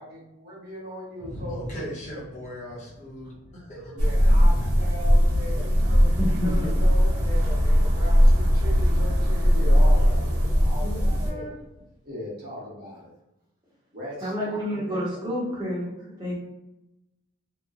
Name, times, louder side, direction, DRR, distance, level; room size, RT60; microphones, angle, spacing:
voice 1, 0.0-1.9 3.9-6.1 6.4-11.5 12.0-13.1 13.9-15.2, left 1 dB, 45° right, -6 dB, 1.0 m, -39 dB
voice 2, 1.2-4.9 5.3-5.4, equal, 35° left, -5 dB, 0.8 m, -38 dB
sound 1, 4.0-11.3, equal, 90° right, 0.7 m, -20 dB
voice 3, 6.2-6.7 10.8-11.5 14.2-15.9 16.2-16.4, equal, 20° right, -6 dB, 0.8 m, -29 dB
3.0 x 2.1 x 2.3 m, 0.93 s
head